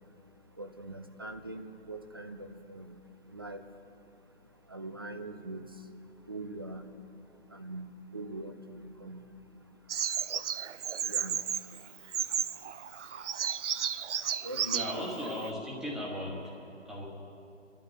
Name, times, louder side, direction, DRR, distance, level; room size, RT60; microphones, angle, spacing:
voice 1, 0.6-2.9 3.3-3.6 4.7-5.6 6.3-6.8 7.5-7.8 8.1-9.2 11.1-11.4 14.4-15.1, right 2 dB, 20° right, 8 dB, 0.4 m, -42 dB
Bird vocalization bird call bird song, 9.9-15.5, right 8 dB, 75° right, 0.5 m, -34 dB
voice 2, 14.7-16.5 16.8-17.1, left 1 dB, ahead, -3 dB, 1.4 m, -37 dB
28.5 x 12.5 x 3.3 m, 2.7 s
figure-of-eight pair, 145°, 35 cm